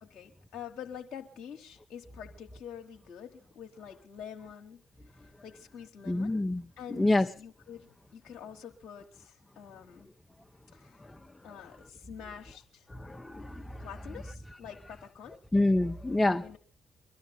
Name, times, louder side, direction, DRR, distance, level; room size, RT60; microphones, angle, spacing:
voice 1, 0.0-6.4 6.8-10.1 10.7-11.0 11.4-12.9 13.8-15.4 16.4-16.6, left 8 dB, 65° left, 1.1 m, -46 dB
voice 2, 6.1-6.6 6.9-7.3 13.0-13.9 15.5-16.6, left 2 dB, 20° left, 0.8 m, -27 dB
22.5 x 12.5 x 4.0 m
hypercardioid pair, 40°, 0 cm